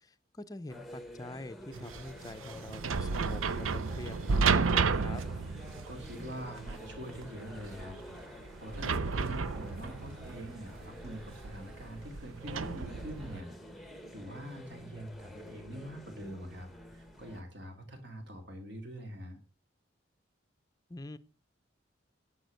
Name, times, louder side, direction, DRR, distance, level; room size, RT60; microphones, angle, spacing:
voice 1, 0.0-5.2 20.9-21.2, left 1 dB, 20° left, 10 dB, 0.6 m, -45 dB
sound 1, 0.7-17.4, equal, ahead, 1.0 m, -49 dB
sound 2, 1.7-13.4, right 5 dB, 90° right, 0.6 m, -33 dB
voice 2, 5.7-19.4, equal, 55° right, 4 dB, 2.8 m, -45 dB
11.0 x 7.5 x 6.4 m, 0.39 s
head